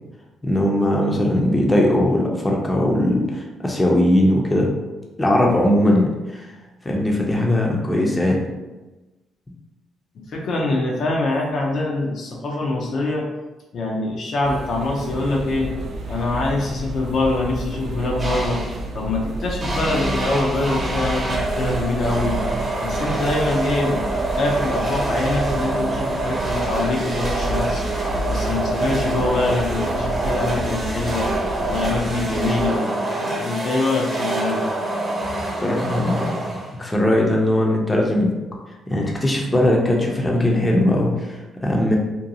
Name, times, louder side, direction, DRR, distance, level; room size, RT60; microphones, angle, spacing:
voice 1, 0.4-4.7 5.2-6.5 6.8-8.4 35.6-38.3 38.9-42.0, left 1 dB, 15° left, -1 dB, 0.5 m, -19 dB
voice 2, 10.3-13.3 13.7-15.7 16.1-18.6 18.9-22.4 22.8-24.1 24.3-31.3 31.7-34.6 35.3-35.5, left 2 dB, 65° left, -1 dB, 0.5 m, -24 dB
sound 1, 14.4-32.7, right 1 dB, 60° right, 0.4 m, -30 dB
sound 2, 18.2-18.9 19.6-37.0, right 2 dB, 35° right, 0.9 m, -26 dB
2.6 x 2.2 x 2.7 m, 1.1 s
cardioid pair, 85°, 0 cm